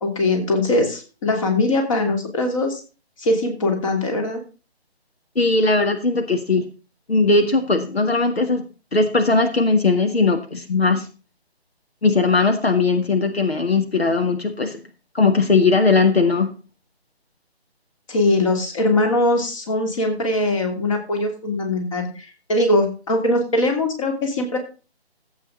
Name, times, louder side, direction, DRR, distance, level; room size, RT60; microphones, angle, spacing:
voice 1, 0.0-2.8 3.2-4.4 18.1-24.6, left 2 dB, 30° left, 3 dB, 2.9 m, -21 dB
voice 2, 5.4-6.7 7.1-8.6 8.9-11.1 12.0-14.8 15.1-16.5, left 3 dB, 70° left, 6 dB, 2.0 m, -19 dB
14.5 x 8.5 x 3.8 m, 0.34 s
figure-of-eight pair, 150°, 32 cm